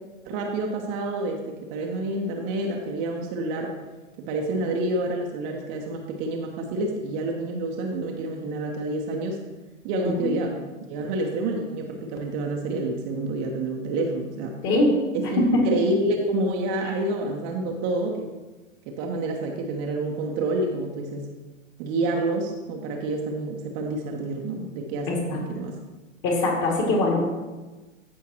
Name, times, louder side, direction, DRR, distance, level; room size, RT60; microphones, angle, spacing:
voice 1, 0.2-3.7 4.2-9.4 9.8-10.6 10.9-14.6 15.1-18.3 18.9-21.3 21.8-25.8, right 2 dB, 30° right, 1 dB, 0.9 m, -28 dB
voice 2, 25.1-25.4 26.2-27.2, left 2 dB, 30° left, -1 dB, 2.5 m, -22 dB
15.0 x 5.6 x 3.0 m, 1.2 s
figure-of-eight pair, 110°, 40 cm